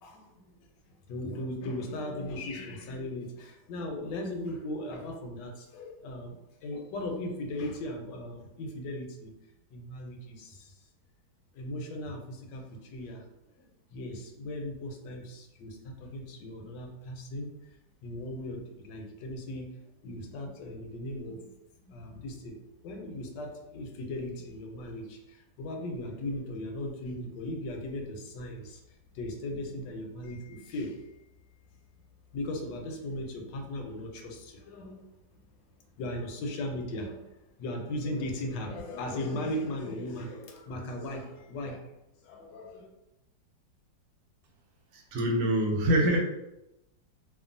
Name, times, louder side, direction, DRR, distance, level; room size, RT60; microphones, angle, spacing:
voice 1, 0.0-0.5 1.1-9.3 9.7-10.8 11.5-13.2 13.5-17.5 18.0-19.7 20.0-21.4 21.8-28.8 29.1-31.1 32.3-35.1 36.0-37.3 37.6-41.9 42.2-42.9, left 1 dB, 75° left, 2 dB, 1.2 m, -38 dB
voice 2, 44.9-46.2, equal, 85° right, -1 dB, 1.3 m, -25 dB
2.9 x 2.3 x 2.5 m, 0.91 s
omnidirectional pair, 2.0 m